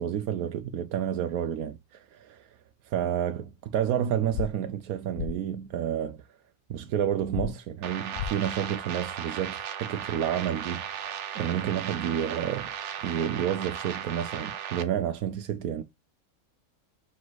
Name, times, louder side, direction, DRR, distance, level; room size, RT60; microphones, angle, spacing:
voice 1, 0.0-2.5 2.9-6.2 6.7-10.8 11.3-12.7 13.0-15.8, right 9 dB, 85° right, 1.2 m, -30 dB
sound 1, 4.3-4.5 5.2-5.3 7.3-7.5 8.1-8.3, left 10 dB, 65° left, 1.2 m, -31 dB
sound 2, 7.8-14.8, right 8 dB, 60° right, 1.0 m, -36 dB
5.8 x 4.8 x 4.0 m
omnidirectional pair, 1.5 m